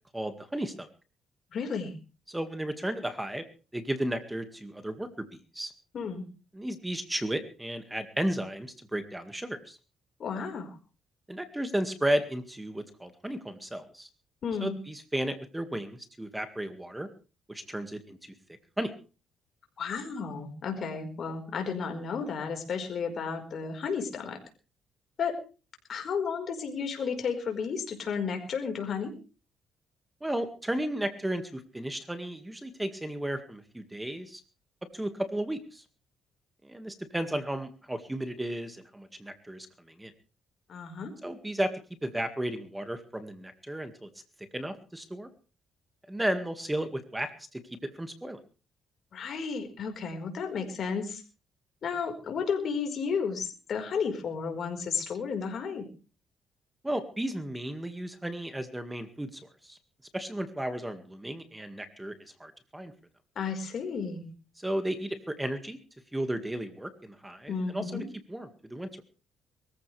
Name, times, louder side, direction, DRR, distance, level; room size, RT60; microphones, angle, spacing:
voice 1, 0.1-0.9 2.3-3.4 3.7-5.3 5.5-5.7 6.5-9.8 11.3-14.1 14.6-17.1 17.5-18.2 18.8-18.9 30.2-34.4 34.9-35.8 36.6-40.1 41.2-41.7 42.0-44.1 44.5-45.3 46.1-48.4 56.8-59.8 60.1-62.9 64.6-65.8 66.1-68.0 68.3-69.0, right 1 dB, 10° right, 8 dB, 2.1 m, -34 dB
voice 2, 1.5-1.9 5.9-6.3 10.2-10.8 14.4-14.7 19.8-24.4 25.2-25.3 25.9-29.1 40.7-41.1 49.1-51.2 51.8-55.9 63.3-64.3 67.5-68.1, left 6 dB, 55° left, 4 dB, 4.7 m, -33 dB
23.0 x 15.0 x 3.4 m, 0.35 s
cardioid pair, 90°, 0 cm